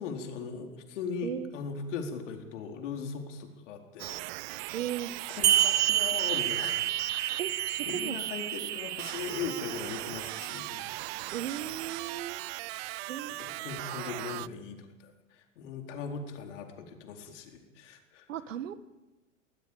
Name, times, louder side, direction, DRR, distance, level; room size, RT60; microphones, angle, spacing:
voice 1, 0.0-4.2 5.3-6.8 7.1-7.4 7.8-10.8 12.6-12.9 13.4-18.3, left 5 dB, 65° left, 4 dB, 4.4 m, -39 dB
sound 1, 4.0-14.5, right 22 dB, 50° right, 0.7 m, -38 dB
voice 2, 4.7-5.1 7.4-8.2 11.3-12.4 13.1-13.7 18.3-18.8, right 10 dB, 75° right, 14 dB, 1.6 m, -37 dB
ornamental manjeera, 5.4-10.4, right 12 dB, 25° right, 1.0 m, -29 dB
20.5 x 19.5 x 8.8 m, 1.1 s
hypercardioid pair, 95°, 39 cm